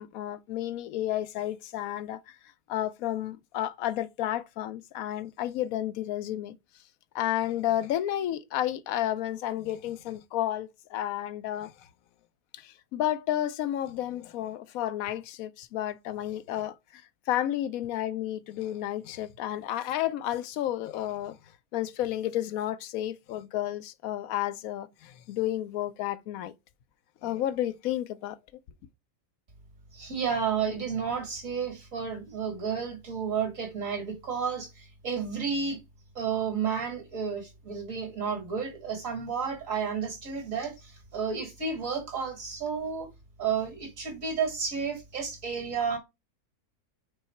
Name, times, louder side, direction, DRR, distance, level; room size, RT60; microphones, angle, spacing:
voice 1, 0.0-2.4 2.7-6.6 7.1-11.7 12.5-17.0 17.3-21.4 21.7-26.5 27.2-28.4, left 12 dB, 75° left, 1.0 m, -31 dB
voice 2, 29.9-35.8 36.2-43.1 43.4-46.0, right 6 dB, 60° right, 2.4 m, -31 dB
5.6 x 4.0 x 4.4 m
omnidirectional pair, 1.6 m